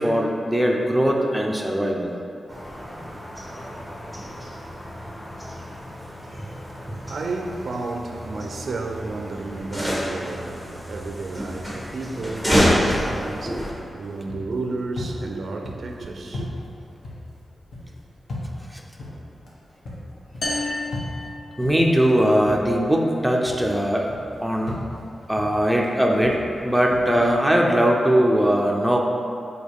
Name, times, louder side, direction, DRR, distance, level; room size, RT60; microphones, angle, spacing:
voice 1, 0.0-2.1 18.7-18.8 21.6-24.1 24.4-24.8 25.3-29.0, equal, 5° right, 0.7 m, -20 dB
sound 1, 2.5-13.7, equal, 15° left, 1.3 m, -28 dB
voice 2, 6.3-6.8 7.1-16.5 25.2-25.3 25.7-25.8 27.1-27.3, right 3 dB, 60° right, 0.5 m, -32 dB
sound 2, 12.1-23.1 23.4-27.0, left 1 dB, 55° left, 1.4 m, -38 dB
sound 3, 20.4-22.1, left 2 dB, 85° left, 1.1 m, -31 dB
7.6 x 4.0 x 3.5 m
wide cardioid pair, 100°, 0 cm